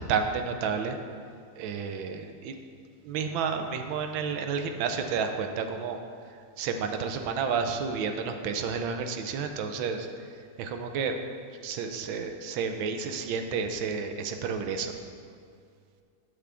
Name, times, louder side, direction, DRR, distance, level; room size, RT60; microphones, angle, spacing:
voice 1, 0.1-1.0 1.6-2.5 3.0-6.0 6.6-10.1 10.6-11.2 11.6-14.9, right 5 dB, 75° right, 6 dB, 1.4 m, -31 dB
8.6 x 8.0 x 3.4 m, 2.3 s
omnidirectional pair, 2.2 m